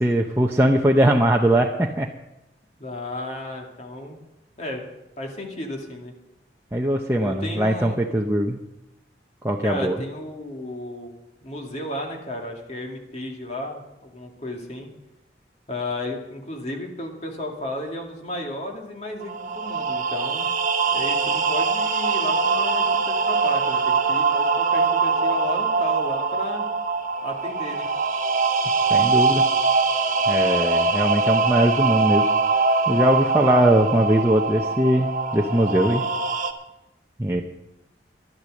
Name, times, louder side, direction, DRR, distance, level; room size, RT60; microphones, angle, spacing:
voice 1, 0.0-2.1 6.7-8.6 9.4-10.0 28.9-29.4 30.3-32.3 32.9-36.0 37.2-37.4, right 1 dB, 15° right, 0 dB, 0.7 m, -20 dB
voice 2, 2.8-4.2 4.6-4.8 5.2-6.1 7.2-8.0 9.6-11.1 11.4-14.9 15.7-20.4 20.9-26.6 27.2-27.9, left 1 dB, 40° left, 1 dB, 2.3 m, -33 dB
sound 1, 19.2-36.5, right 4 dB, 45° right, 1.1 m, -22 dB
12.0 x 11.5 x 6.4 m, 0.94 s
head